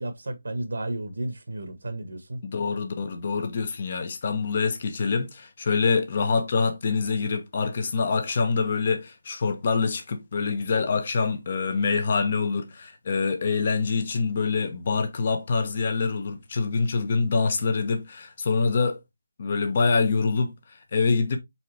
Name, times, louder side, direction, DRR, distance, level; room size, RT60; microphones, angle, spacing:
voice 1, 0.0-2.4, right 1 dB, 70° right, 1.2 m, -33 dB
voice 2, 2.4-19.0 19.4-20.5 20.9-21.4, left 4 dB, 30° left, 0.8 m, -25 dB
4.2 x 3.8 x 3.2 m
figure-of-eight pair, 175°, 0 cm